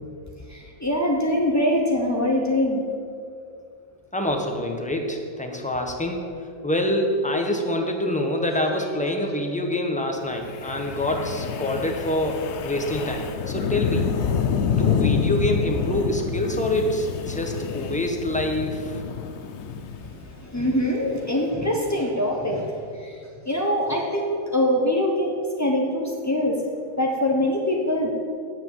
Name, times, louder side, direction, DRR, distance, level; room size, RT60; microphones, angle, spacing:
voice 1, 0.5-2.8 20.1-23.2 23.4-26.6 27.0-28.1, left 1 dB, 30° left, -1 dB, 0.3 m, -23 dB
voice 2, 4.1-14.1 14.7-19.0 19.8-19.9, left 1 dB, 5° left, 2 dB, 0.7 m, -26 dB
Wind, 10.4-20.7, left 7 dB, 70° left, 0.6 m, -27 dB
9.4 x 7.9 x 7.6 m, 2.4 s
omnidirectional pair, 2.0 m